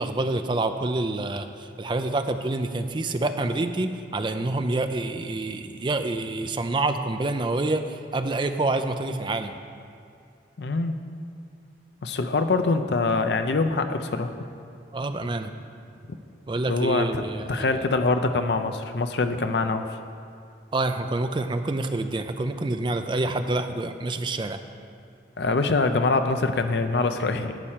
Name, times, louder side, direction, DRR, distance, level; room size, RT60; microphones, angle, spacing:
voice 1, 0.0-7.8 8.1-9.5 14.9-15.5 16.5-17.8 20.7-24.6, right 2 dB, 25° right, 8 dB, 0.4 m, -27 dB
voice 2, 10.6-11.0 12.0-14.4 16.7-17.2 17.5-19.9 25.4-27.6, left 3 dB, 70° left, 8 dB, 0.5 m, -24 dB
11.0 x 4.4 x 7.3 m, 2.4 s
head